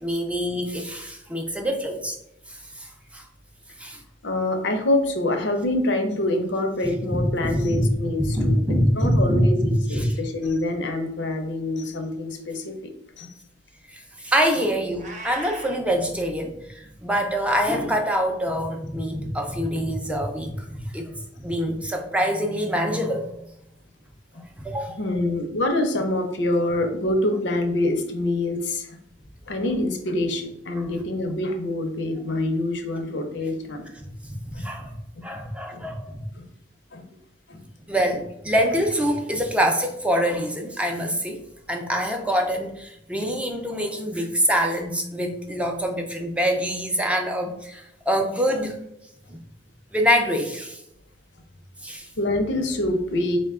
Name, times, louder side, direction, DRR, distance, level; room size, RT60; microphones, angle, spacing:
voice 1, 0.0-2.2 2.5-2.9 3.1-3.3 3.8-4.0 6.8-7.9 8.2-9.4 9.9-10.2 13.9-23.5 24.6-25.0 30.8-30.9 33.9-34.9 35.2-36.3 37.9-41.4 41.7-48.8 49.3-49.4 49.9-50.8 51.8-52.1, equal, 5° right, 3 dB, 0.4 m, -25 dB
voice 2, 4.2-8.6 9.0-12.7 13.2-13.3 25.0-28.9 29.5-33.8 34.5-34.6 35.7-35.8 36.4-36.5 36.9-37.0 37.5-37.6 52.2-53.4, left 1 dB, 80° left, 6 dB, 0.7 m, -25 dB
Meow, 15.0-15.8, right 3 dB, 40° right, 0.7 m, -38 dB
4.2 x 2.2 x 3.5 m, 0.81 s
head